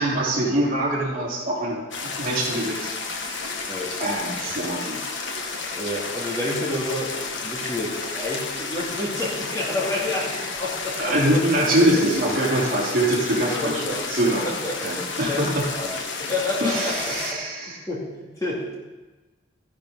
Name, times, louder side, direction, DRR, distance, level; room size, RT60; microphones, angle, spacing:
voice 1, 0.0-1.8 2.2-2.9 3.4-3.5 4.0-5.0 11.0-14.5 14.8-15.6 16.6-17.8, right 1 dB, 45° right, -5 dB, 3.7 m, -23 dB
sound 1, 1.9-17.3, left 4 dB, 60° left, 1.4 m, -31 dB
voice 2, 5.7-11.6 13.4-14.1 14.4-17.4 17.7-18.7, left 2 dB, 15° left, -6 dB, 2.6 m, -30 dB
14.0 x 11.5 x 3.9 m, 1.2 s
head